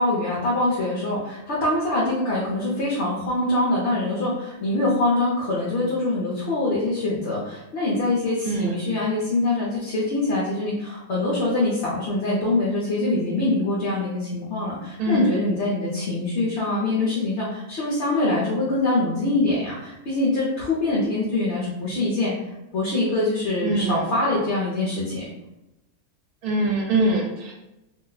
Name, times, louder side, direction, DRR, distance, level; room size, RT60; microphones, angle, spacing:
voice 1, 0.0-22.3 22.7-25.2, left 2 dB, 55° left, -6 dB, 0.9 m, -24 dB
voice 2, 8.4-8.8 15.0-15.5 23.6-24.1 26.4-27.5, right 2 dB, 85° right, -1 dB, 1.1 m, -23 dB
2.8 x 2.1 x 3.8 m, 0.94 s
omnidirectional pair, 1.6 m